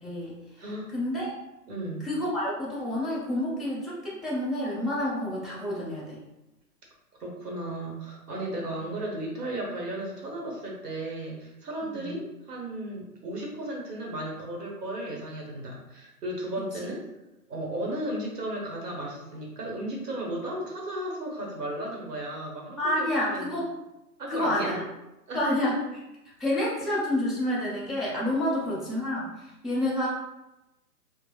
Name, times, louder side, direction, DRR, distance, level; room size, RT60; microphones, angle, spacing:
voice 1, 0.0-0.6 0.9-1.4 2.0-6.2 11.8-12.2 22.8-23.7 24.3-24.8 25.3-25.8 26.4-30.1, left 1 dB, ahead, -6 dB, 0.3 m, -29 dB
voice 2, 0.6-0.9 1.7-2.1 7.2-17.0 17.5-23.5 24.2-24.8 25.3-25.6 28.5-28.8, right 1 dB, 80° right, -2 dB, 1.0 m, -35 dB
2.1 x 2.0 x 3.1 m, 0.96 s
hypercardioid pair, 175°, 47 cm